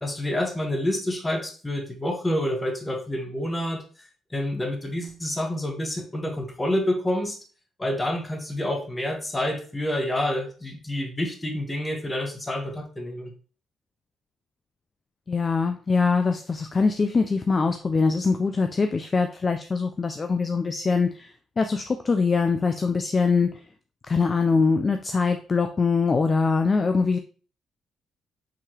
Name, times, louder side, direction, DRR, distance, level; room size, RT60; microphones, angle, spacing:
voice 1, 0.0-7.4 7.8-13.3, left 1 dB, 15° left, 3 dB, 1.1 m, -28 dB
voice 2, 15.3-23.6 24.1-27.2, left 4 dB, 35° left, 7 dB, 0.4 m, -23 dB
4.8 x 3.4 x 2.9 m, 0.39 s
cardioid pair, 90°, 0 cm